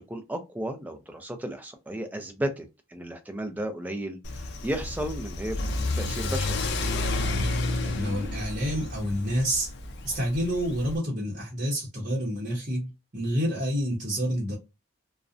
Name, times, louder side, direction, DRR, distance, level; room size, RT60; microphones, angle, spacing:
voice 1, 0.0-5.6 5.9-6.6, right 1 dB, 10° right, 0.4 m, -34 dB
Car / Accelerating revving vroom, 4.2-11.0, left 2 dB, 55° left, 0.4 m, -31 dB
voice 2, 7.1-7.4 7.8-9.7 10.0-14.6, equal, 40° right, 0.7 m, -29 dB
2.5 x 2.0 x 2.4 m
head